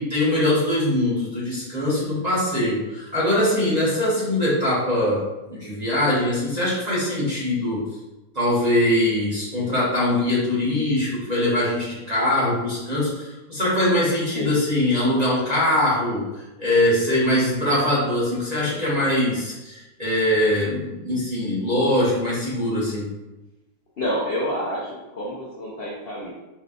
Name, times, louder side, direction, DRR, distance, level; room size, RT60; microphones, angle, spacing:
voice 1, 0.0-7.8 8.3-23.0, left 1 dB, 30° right, -9 dB, 0.9 m, -22 dB
voice 2, 24.0-26.3, equal, 75° left, -5 dB, 0.5 m, -28 dB
4.2 x 2.4 x 3.6 m, 1.0 s
omnidirectional pair, 2.0 m